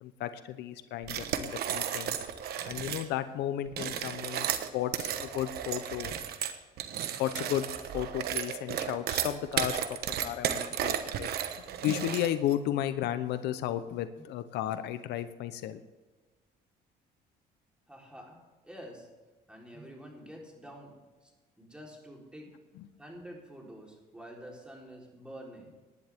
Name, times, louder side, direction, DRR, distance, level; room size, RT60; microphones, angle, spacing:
voice 1, 0.0-2.2 2.6-6.1 7.2-7.7 7.9-11.3 11.8-15.8 22.8-22.9, left 11 dB, 80° left, 11 dB, 0.8 m, -34 dB
sound 1, 1.0-3.1 3.7-12.5, right 9 dB, 70° right, 1.1 m, -34 dB
voice 2, 17.9-19.1 19.5-20.9 21.2-21.3 21.6-22.5 23.0-25.7, equal, 5° right, -1 dB, 3.8 m, -48 dB
19.0 x 10.5 x 3.6 m, 1.3 s
cardioid pair, 110°, 17 cm